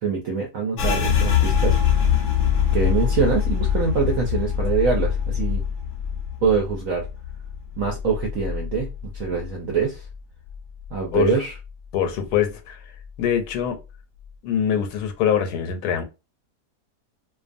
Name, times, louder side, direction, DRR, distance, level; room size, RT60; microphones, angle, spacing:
voice 1, 0.0-1.8 2.7-5.6 6.4-7.1 7.8-10.1 10.9-11.5, right 5 dB, 65° right, 0.9 m, -24 dB
sound 1, 0.8-10.2 10.5-11.7 12.0-12.5 13.0-13.5, left 8 dB, 65° left, 0.7 m, -24 dB
voice 2, 11.9-12.8 13.2-13.8 14.4-16.0, left 9 dB, 85° left, 1.1 m, -23 dB
2.5 x 2.3 x 2.5 m
omnidirectional pair, 1.7 m